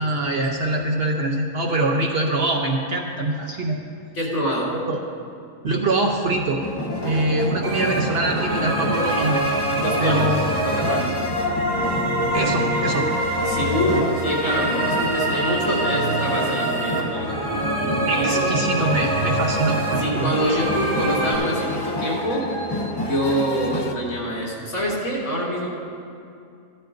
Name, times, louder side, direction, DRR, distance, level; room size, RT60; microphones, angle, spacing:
voice 1, 0.0-3.8 4.9-5.0 5.6-6.6 7.0-9.4 10.0-10.4 12.3-13.1 18.1-20.6, right 2 dB, 50° right, 1 dB, 0.9 m, -24 dB
voice 2, 4.1-4.7 9.8-11.2 13.4-18.5 20.0-25.7, equal, 75° left, -7 dB, 3.6 m, -26 dB
sound 1, 6.6-23.9, left 1 dB, 30° left, 0.5 m, -29 dB
sound 2, 7.6-21.4, right 1 dB, 25° right, 3.4 m, -25 dB
15.0 x 12.0 x 2.6 m, 2.4 s
omnidirectional pair, 1.5 m